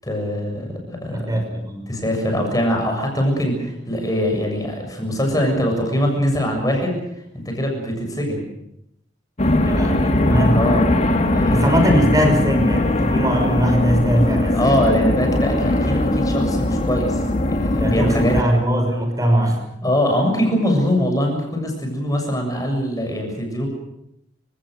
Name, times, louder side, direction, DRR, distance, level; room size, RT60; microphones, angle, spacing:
voice 1, 0.0-1.3 1.9-7.0 7.3-8.5 10.5-10.9 11.3-11.7 14.5-18.4 19.8-23.7, equal, 20° left, 3 dB, 7.2 m, -22 dB
voice 2, 1.1-1.9 9.6-10.7 11.5-14.8 17.7-19.6, equal, 20° right, 5 dB, 5.9 m, -20 dB
sound 1, 9.4-18.4, left 1 dB, 40° left, 2.0 m, -20 dB
30.0 x 17.5 x 6.5 m, 0.81 s
head